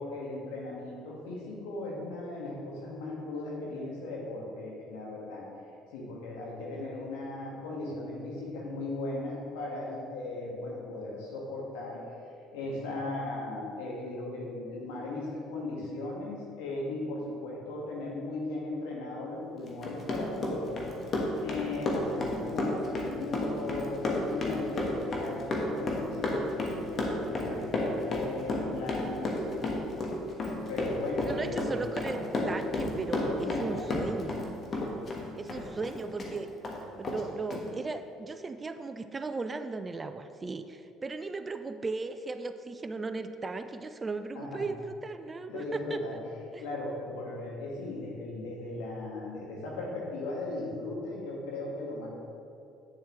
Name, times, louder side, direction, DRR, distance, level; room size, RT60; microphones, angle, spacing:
voice 1, 0.0-5.4 5.9-12.0 12.5-20.8 21.4-29.6 30.4-31.8 33.1-33.9 44.3-44.7 45.5-46.2 46.6-52.1, left 2 dB, 75° left, -3 dB, 1.7 m, -37 dB
Run, 19.7-34.5 34.7-36.3 36.6-36.8 37.0-37.2 37.5-37.6, left 2 dB, 45° left, 1.4 m, -31 dB
voice 2, 31.2-32.2 32.5-34.4 35.4-36.5 36.9-46.0 46.5-46.6, right 3 dB, 30° right, 9 dB, 0.4 m, -37 dB
8.7 x 7.2 x 3.2 m, 2.6 s
hypercardioid pair, 60°, 0 cm